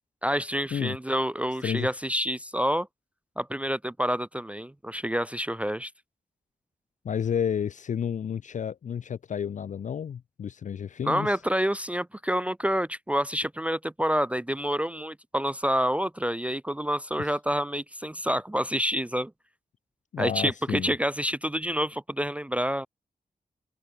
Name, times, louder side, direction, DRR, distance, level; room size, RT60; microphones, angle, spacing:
voice 1, 0.2-2.9 3.4-5.9 11.0-19.3 20.2-22.9, equal, 10° right, 0.4 m, -28 dB
voice 2, 7.0-11.4 17.2-17.3 20.1-20.9, left 8 dB, 55° left, 0.5 m, -31 dB
open air
cardioid pair, 90°, 15 cm